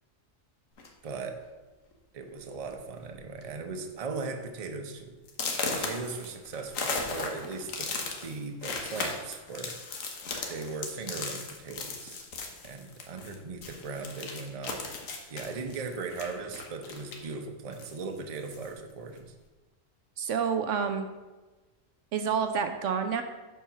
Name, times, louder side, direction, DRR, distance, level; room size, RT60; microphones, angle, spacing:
sound 1, 0.8-1.1 1.9-2.0 2.4-2.7 3.0-3.4 3.8-3.9 4.4-4.5 5.3-13.3 13.6-17.3 17.7-18.7, left 3 dB, 80° left, 1.4 m, -36 dB
voice 1, 1.0-1.4 2.1-5.2 5.6-10.1 10.5-12.2 12.6-14.8 15.3-19.3, right 4 dB, 35° right, 5 dB, 0.7 m, -38 dB
voice 2, 20.2-21.1 22.1-23.2, right 6 dB, 70° right, 8 dB, 0.9 m, -28 dB
7.1 x 4.7 x 6.0 m, 1.2 s
omnidirectional pair, 1.4 m